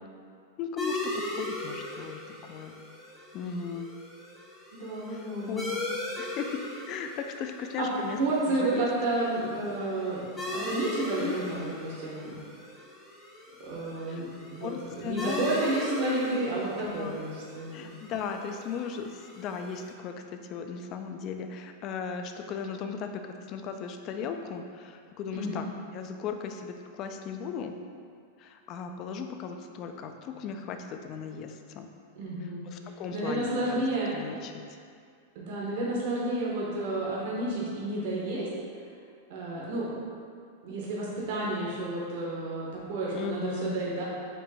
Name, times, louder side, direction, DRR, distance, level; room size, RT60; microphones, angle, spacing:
voice 1, 0.6-2.7 3.3-3.9 5.1-5.7 6.2-6.6 6.9-8.2 8.5-8.9 11.2-11.3 14.1-14.2 14.6-15.5 16.8-17.2 17.7-25.7 25.9-27.8 28.4-31.9 32.4-34.6 43.1-43.8, left 6 dB, 40° left, 6 dB, 0.3 m, -37 dB
sound 1, 0.8-19.9, left 2 dB, 10° left, 0.8 m, -39 dB
voice 2, 4.7-5.7 7.8-7.9 8.2-12.4 13.6-17.9 25.3-25.6 32.2-32.7 33.1-34.1 35.3-38.5 39.3-39.8 40.6-44.0, right 2 dB, 60° right, -5 dB, 1.0 m, -31 dB
4.4 x 2.6 x 4.2 m, 2.2 s
supercardioid pair, 140°, 0 cm